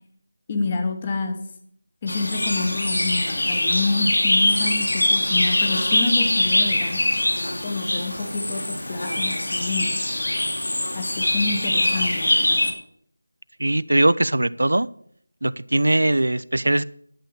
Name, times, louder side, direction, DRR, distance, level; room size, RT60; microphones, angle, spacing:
voice 1, 0.5-1.4 2.0-7.0 7.6-9.9 10.9-12.6, left 3 dB, 20° left, 6 dB, 1.2 m, -28 dB
sound 1, 2.1-12.7, left 1 dB, 85° left, 3.0 m, -23 dB
voice 2, 13.6-14.9 15.4-16.8, right 1 dB, 90° right, 18 dB, 0.5 m, -20 dB
11.5 x 6.6 x 7.5 m, 0.65 s
figure-of-eight pair, 175°, 0 cm